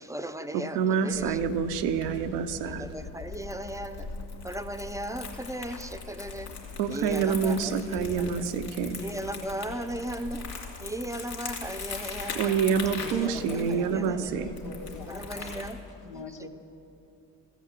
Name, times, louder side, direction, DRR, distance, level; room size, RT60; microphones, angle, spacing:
voice 1, 0.0-1.4 2.6-4.1 4.4-6.5 6.9-8.3 9.0-10.5 10.8-12.6 13.1-14.3 15.1-15.8 16.1-16.5, right 1 dB, 5° right, 9 dB, 0.6 m, -37 dB
voice 2, 0.5-2.9 6.8-9.0 12.3-14.5, right 6 dB, 85° right, 9 dB, 0.7 m, -27 dB
Crumpling crinkling, 1.1-15.7, left 5 dB, 50° left, 2.8 m, -40 dB
voice 3, 12.9-15.5 16.0-16.5, left 4 dB, 85° left, 3 dB, 1.2 m, -44 dB
14.5 x 5.1 x 8.2 m, 2.8 s
hypercardioid pair, 55°, 46 cm